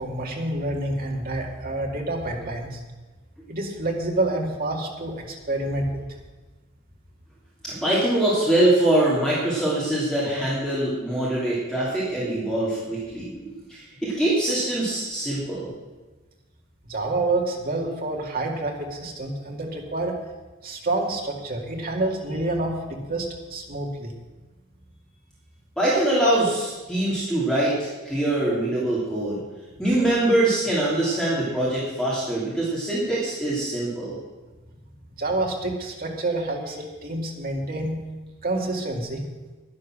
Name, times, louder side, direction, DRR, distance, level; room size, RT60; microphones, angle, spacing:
voice 1, 0.0-2.8 3.5-6.0 16.9-20.2 20.6-24.2 35.2-38.0 38.4-39.3, right 2 dB, 40° right, 0 dB, 2.1 m, -28 dB
voice 2, 7.6-15.7 25.8-29.4 29.8-34.2, right 1 dB, 5° left, -7 dB, 2.8 m, -23 dB
10.5 x 10.5 x 6.3 m, 1.2 s
head